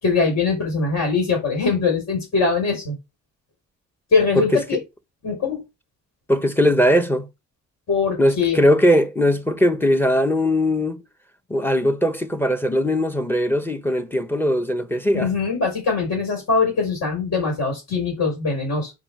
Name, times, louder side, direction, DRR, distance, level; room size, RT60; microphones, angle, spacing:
voice 1, 0.0-3.0 4.1-4.8 5.2-5.6 7.9-8.6 15.1-18.9, left 4 dB, 55° left, 4.6 m, -22 dB
voice 2, 6.3-7.3 8.2-11.0 11.5-15.3, equal, 5° left, 1.0 m, -19 dB
6.0 x 4.8 x 4.6 m
cardioid pair, 90°, 30 cm